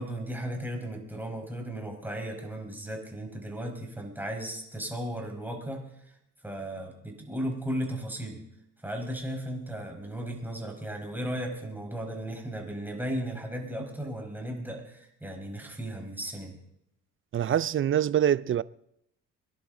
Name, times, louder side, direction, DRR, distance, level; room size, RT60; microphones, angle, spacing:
voice 1, 0.0-5.8 6.4-8.4 8.8-16.6, right 1 dB, 5° right, 5.1 m, -35 dB
voice 2, 17.3-18.6, right 10 dB, 45° right, 0.5 m, -24 dB
24.5 x 11.0 x 3.9 m
cardioid pair, 90°, 30 cm